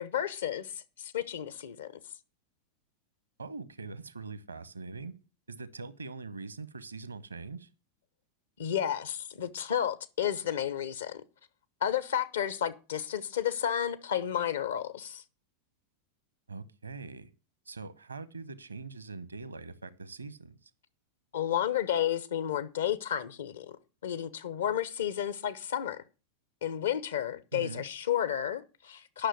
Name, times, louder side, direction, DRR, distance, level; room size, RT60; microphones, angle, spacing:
voice 1, 0.0-1.9 8.6-11.2 11.8-15.2 21.3-23.7 24.0-26.0 26.6-29.3, left 10 dB, 65° left, 1.0 m, -32 dB
voice 2, 3.4-5.1 5.5-7.7 16.5-17.3 17.7-20.7 27.5-27.8, right 4 dB, 80° right, 0.9 m, -42 dB
10.0 x 6.3 x 7.8 m
figure-of-eight pair, 90°, 0 cm